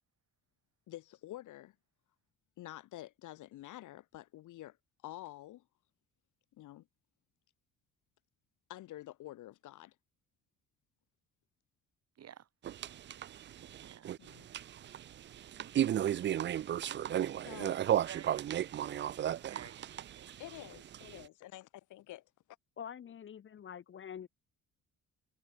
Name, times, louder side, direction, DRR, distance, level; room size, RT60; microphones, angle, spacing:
voice 1, 0.9-1.8 2.6-4.8 5.0-5.6 6.5-6.9 8.7-10.0 14.2-14.5 16.6-16.7 17.5-17.8 18.9-19.3 20.4-22.2, left 15 dB, 85° left, 1.9 m, -49 dB
voice 2, 12.2-12.5 13.8-14.1 15.5-15.9 16.9-17.0 18.0-18.9 19.5-20.3, right 9 dB, 55° right, 1.9 m, -53 dB
sound 1, 12.6-21.2, right 11 dB, 40° right, 0.4 m, -35 dB
voice 3, 22.8-24.3, left 8 dB, 40° left, 0.7 m, -46 dB
cardioid pair, 90°, 30 cm